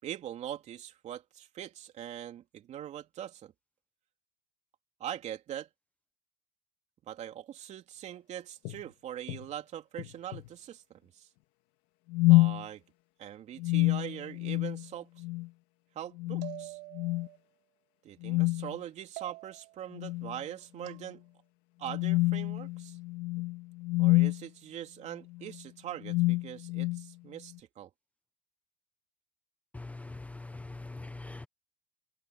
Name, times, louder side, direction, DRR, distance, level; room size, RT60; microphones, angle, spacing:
voice 1, 0.0-3.5 5.0-5.7 7.1-11.3 12.3-12.8 13.2-15.2 15.9-16.8 18.0-21.2 21.8-23.0 24.0-27.9, right 11 dB, 40° right, 3.1 m, -42 dB
sound 1, 8.7-8.8 9.3-9.5 10.0-10.5 12.1-12.6 13.6-14.9 15.2-15.5 16.2-16.6 16.9-17.3 18.2-18.8 19.9-20.4 20.8-21.0 21.9-24.4 25.3-25.6 26.0-27.1, left 21 dB, 65° left, 2.0 m, -28 dB
sound 2, 14.0-14.8 16.4-17.4 19.2-19.8 20.9-21.1, right 25 dB, 70° right, 4.2 m, -47 dB
voice 2, 29.7-31.5, left 2 dB, 10° left, 0.6 m, -42 dB
supercardioid pair, 125°, 18 cm